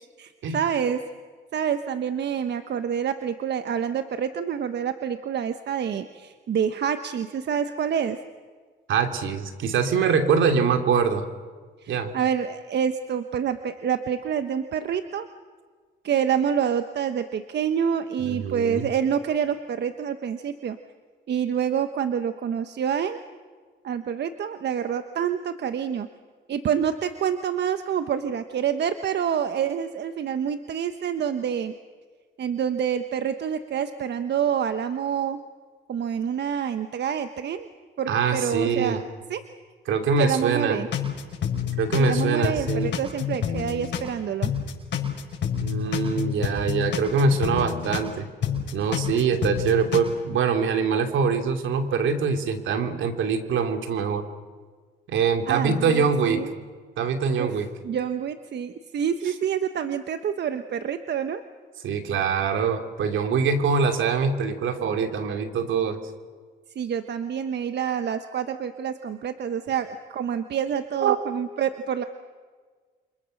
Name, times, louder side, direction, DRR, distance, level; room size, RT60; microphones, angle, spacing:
voice 1, 0.2-1.0 1.5-8.2 11.8-15.3 16.0-20.8 21.3-23.2 23.8-26.1 26.5-31.7 32.4-35.4 35.9-37.7 38.0-39.0 39.3-39.4 40.2-40.9 41.9-44.5 55.5-56.5 57.4-57.6 57.8-61.4 66.7-72.0, right 8 dB, 60° right, 9 dB, 1.2 m, -27 dB
voice 2, 8.9-11.2 11.9-12.2 18.2-18.9 38.1-39.0 39.9-40.8 41.8-42.9 45.6-48.3 48.7-54.2 55.1-56.4 57.0-57.7 59.2-59.3 61.8-66.0 71.0-71.2, right 5 dB, 75° right, 6 dB, 2.9 m, -24 dB
sound 1, 40.9-44.1 44.4-48.1 48.4-50.0, left 8 dB, 65° left, 6.0 m, -28 dB
29.0 x 26.0 x 6.6 m, 1.5 s
cardioid pair, 90°, 20 cm